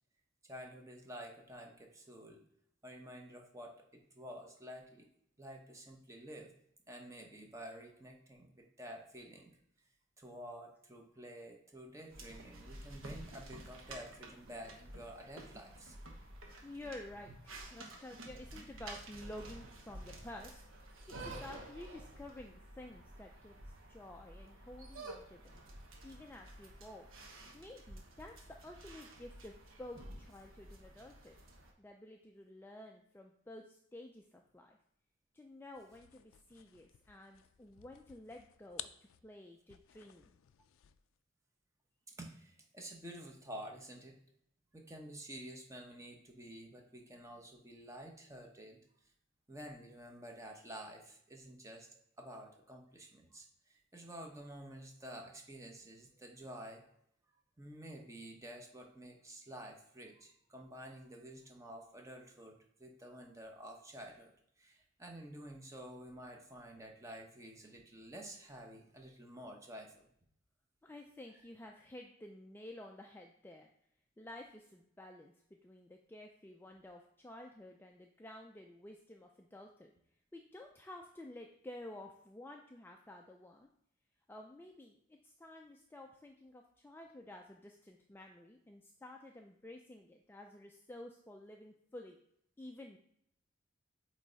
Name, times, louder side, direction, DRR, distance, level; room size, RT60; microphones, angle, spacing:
voice 1, 0.4-2.4 2.8-5.1 5.4-6.6 6.9-9.6 10.2-16.0 42.1-44.2 44.7-48.8 49.5-51.9 52.2-56.9 57.6-70.1, right 1 dB, 15° right, 2 dB, 0.8 m, -50 dB
sound 1, 12.1-31.7, right 1 dB, 80° right, 1.1 m, -51 dB
voice 2, 16.6-25.6 26.0-27.1 27.5-31.4 31.8-34.8 35.3-38.9 39.2-40.3 70.8-73.7 74.2-75.3 75.6-79.9 80.3-83.7 84.3-92.2 92.6-93.0, left 1 dB, 10° left, 2 dB, 0.3 m, -52 dB
sound 2, 35.7-41.1, left 13 dB, 85° left, 0.3 m, -54 dB
8.2 x 3.2 x 4.0 m, 0.70 s
head